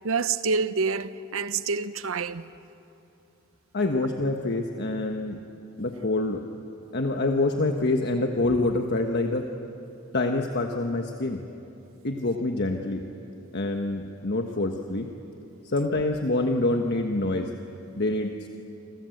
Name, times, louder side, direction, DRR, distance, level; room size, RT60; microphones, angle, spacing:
voice 1, 0.0-2.5, right 4 dB, 75° right, 0.8 m, -27 dB
voice 2, 3.7-5.4 5.8-6.4 6.9-9.5 10.1-11.4 12.0-13.1 13.5-15.1 15.6-17.5 17.9-18.5, left 2 dB, 55° left, 1.3 m, -26 dB
27.5 x 26.5 x 7.9 m
head